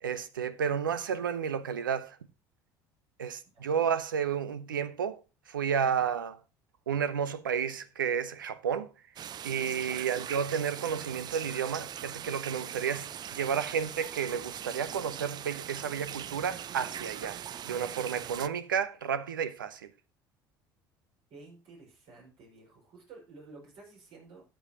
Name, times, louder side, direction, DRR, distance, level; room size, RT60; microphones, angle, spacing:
voice 1, 0.0-2.2 3.2-5.2 5.5-6.4 6.9-8.9 9.4-19.9, right 7 dB, 85° right, 0.7 m, -32 dB
sound 1, 9.2-18.5, right 10 dB, 40° right, 0.5 m, -41 dB
voice 2, 21.3-24.4, right 3 dB, 60° right, 5.7 m, -52 dB
13.0 x 7.9 x 2.9 m
hypercardioid pair, 65°, 11 cm